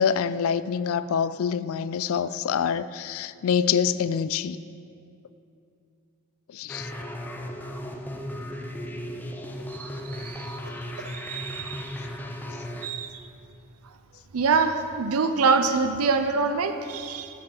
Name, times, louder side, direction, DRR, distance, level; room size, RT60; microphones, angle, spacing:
voice 1, 0.0-4.6 6.5-6.9, left 7 dB, 70° left, 16 dB, 0.3 m, -26 dB
sound 1, 6.7-12.9, equal, 10° left, 0.5 m, -36 dB
voice 2, 9.7-10.5 11.1-11.9 12.8-13.1 14.3-17.3, right 4 dB, 85° right, 8 dB, 0.6 m, -25 dB
7.9 x 6.8 x 7.0 m, 2.5 s
head